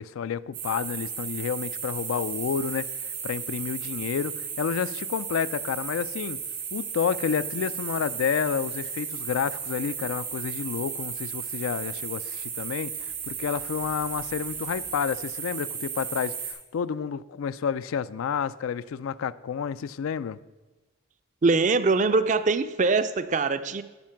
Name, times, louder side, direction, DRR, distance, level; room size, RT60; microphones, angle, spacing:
voice 1, 0.0-6.4 6.7-20.4, left 7 dB, 75° left, 16 dB, 0.4 m, -30 dB
sound 1, 0.5-16.5, right 7 dB, 90° right, 3.2 m, -34 dB
voice 2, 21.4-23.8, right 3 dB, 35° right, 12 dB, 0.4 m, -23 dB
12.5 x 5.2 x 5.7 m, 1.2 s
head